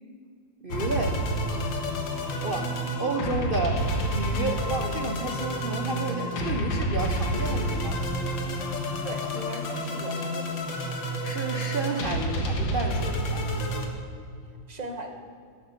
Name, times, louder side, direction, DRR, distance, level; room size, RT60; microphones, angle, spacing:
voice 1, 0.6-1.3 2.4-8.0 11.2-13.4, right 3 dB, 75° right, 4 dB, 0.5 m, -31 dB
sound 1, 0.7-13.9, equal, 75° left, 2.2 m, -29 dB
voice 2, 9.0-10.7 14.7-15.1, right 2 dB, 25° right, 4 dB, 1.2 m, -38 dB
14.0 x 11.0 x 5.9 m, 2.3 s
omnidirectional pair, 2.1 m